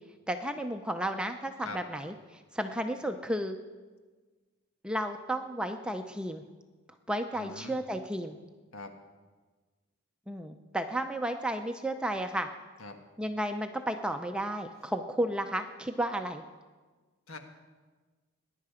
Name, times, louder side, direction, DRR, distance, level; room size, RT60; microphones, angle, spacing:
voice 1, 0.3-2.1 2.5-3.6 4.8-6.4 7.1-8.3 10.3-12.5 13.2-16.4, right 1 dB, 5° right, 6 dB, 0.5 m, -33 dB
voice 2, 7.3-7.8 8.7-8.9 12.8-13.0 17.3-17.4, left 3 dB, 80° left, 5 dB, 1.5 m, -43 dB
19.5 x 10.5 x 5.0 m, 1.4 s
head